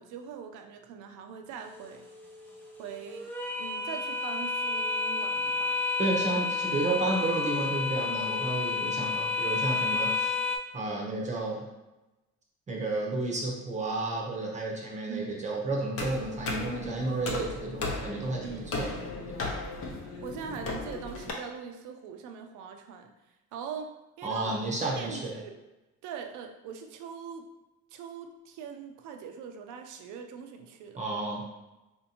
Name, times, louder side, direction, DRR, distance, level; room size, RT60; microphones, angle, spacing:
voice 1, 0.0-2.0 2.8-3.3 3.6-5.8 15.1-15.4 18.4-18.8 20.2-23.1 23.5-24.6 25.0-25.6 26.0-27.5 27.9-31.0, right 7 dB, 80° right, 5 dB, 0.6 m, -41 dB
sound 1, 1.6-10.6, left 3 dB, 5° left, 0.4 m, -31 dB
voice 2, 6.0-10.3 10.7-11.7 12.7-18.9 19.3-19.4 24.2-25.4 31.0-31.4, right 2 dB, 25° right, -2 dB, 0.7 m, -32 dB
sound 2, 16.0-21.3, left 2 dB, 50° left, 0.8 m, -36 dB
4.2 x 2.7 x 2.8 m, 1.0 s
cardioid pair, 135°, 30 cm